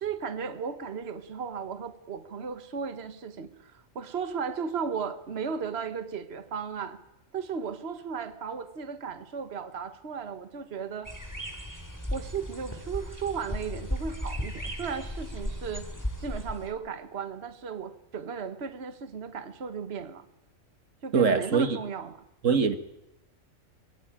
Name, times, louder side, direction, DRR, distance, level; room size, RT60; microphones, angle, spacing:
voice 1, 0.0-7.0 7.3-11.1 12.1-15.9 16.2-20.2 21.0-22.1, right 6 dB, 55° right, 1.5 m, -35 dB
sound 1, 11.1-16.7, equal, 15° left, 3.1 m, -36 dB
voice 2, 21.1-21.8 22.4-22.8, right 5 dB, 75° right, 1.8 m, -23 dB
23.5 x 21.0 x 8.8 m
omnidirectional pair, 1.3 m